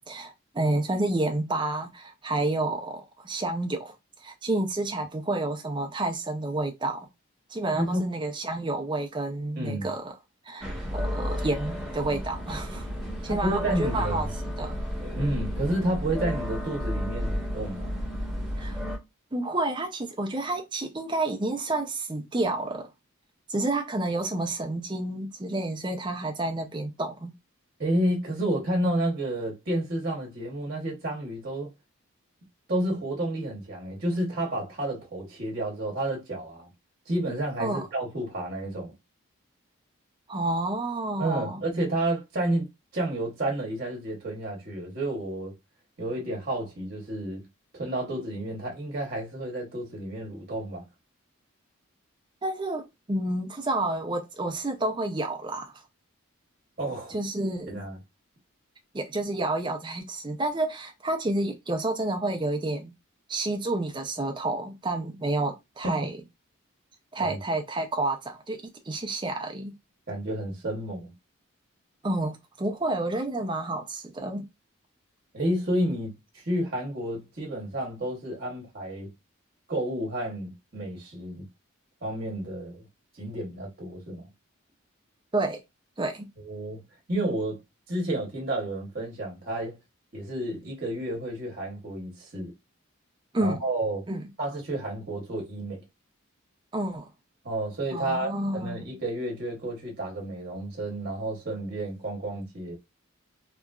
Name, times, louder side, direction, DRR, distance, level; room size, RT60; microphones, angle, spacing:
voice 1, 0.0-3.9 4.2-7.1 7.5-10.1 10.4-12.9 13.2-14.3 14.6-14.8 18.6-18.8 19.3-22.9 23.5-27.3 37.6-37.9 40.3-41.6 52.4-55.7 57.1-57.8 58.9-62.9 63.3-66.2 67.1-69.7 72.0-74.4 85.3-85.6 86.0-86.3 93.3-93.6 94.1-94.2 96.7-97.1 97.9-98.8, right 2 dB, 20° right, 0.5 m, -29 dB
voice 2, 7.7-8.0 9.6-9.9 13.3-14.3 15.2-18.0 27.8-31.7 32.7-36.7 37.1-38.9 41.2-42.7 42.9-45.5 46.0-47.5 47.7-50.9 56.8-57.2 57.7-58.0 65.8-66.1 67.2-67.4 70.1-71.1 75.3-79.1 79.7-81.5 82.0-82.9 83.2-84.3 86.4-87.6 87.9-89.8 90.1-92.5 93.4-94.0 94.4-95.8 97.4-102.8, right 1 dB, 45° right, 1.0 m, -30 dB
sound 1, 10.6-19.0, equal, 5° right, 0.9 m, -32 dB
3.0 x 2.4 x 2.3 m
head